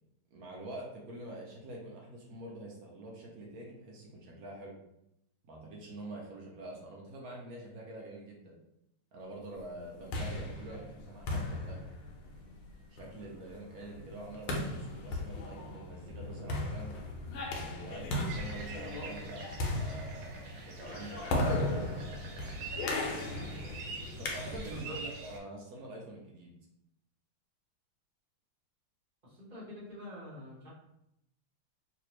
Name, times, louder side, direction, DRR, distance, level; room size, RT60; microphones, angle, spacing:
voice 1, 0.3-4.7 5.4-8.6 9.1-11.9 12.9-16.9 17.5-21.5 24.1-26.5, right 1 dB, 65° right, -2 dB, 0.9 m, -46 dB
sound 1, 9.8-24.9, left 2 dB, 80° left, 1.5 m, -37 dB
sound 2, 18.3-25.4, right 4 dB, 80° right, 1.5 m, -46 dB
voice 2, 29.2-30.7, left 1 dB, 30° right, -8 dB, 1.0 m, -46 dB
3.3 x 3.0 x 3.0 m, 0.82 s
omnidirectional pair, 2.2 m